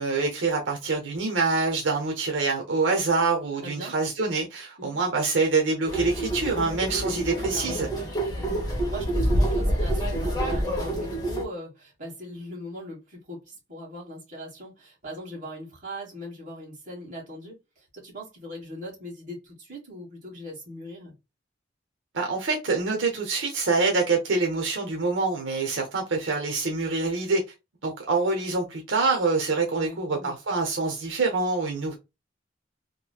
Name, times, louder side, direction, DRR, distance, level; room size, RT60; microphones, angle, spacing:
voice 1, 0.0-7.9 22.1-27.4 27.8-32.0, right 3 dB, 85° right, 0.8 m, -25 dB
voice 2, 3.6-3.9 4.8-5.0 7.5-8.1 8.4-21.1 29.7-30.3, equal, 45° right, 1.5 m, -40 dB
sound 1, 5.9-11.4, right 1 dB, 20° left, 1.0 m, -27 dB
3.0 x 2.7 x 2.3 m
head